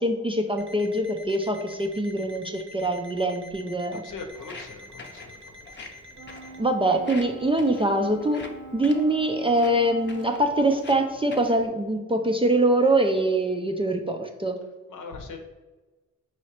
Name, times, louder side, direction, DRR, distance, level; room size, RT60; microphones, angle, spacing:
voice 1, 0.0-4.0 6.6-8.5 8.7-14.6, right 1 dB, 15° right, 4 dB, 0.4 m, -24 dB
Alarm, 0.6-6.6, left 1 dB, 35° right, 0.8 m, -47 dB
voice 2, 3.9-5.6 14.9-15.4, left 4 dB, 70° left, 4 dB, 0.8 m, -40 dB
Walk footsteps, 4.3-11.7, left 3 dB, 35° left, 0.7 m, -46 dB
Brass instrument, 6.2-10.6, right 3 dB, 70° right, 0.9 m, -43 dB
4.7 x 3.0 x 2.9 m, 1.2 s
cardioid pair, 55°, 33 cm